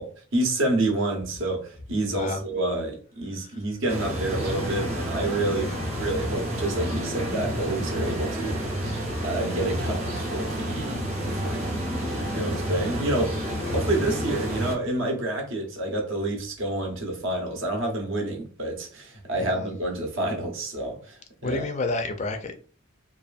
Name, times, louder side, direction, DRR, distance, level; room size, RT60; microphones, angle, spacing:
voice 1, 0.3-21.6, right 2 dB, 65° right, 0.8 m, -29 dB
sound 1, 3.9-14.8, equal, 30° right, 0.7 m, -29 dB
voice 2, 19.3-19.7 21.4-22.5, left 2 dB, 35° left, 0.3 m, -30 dB
2.6 x 2.4 x 2.4 m
head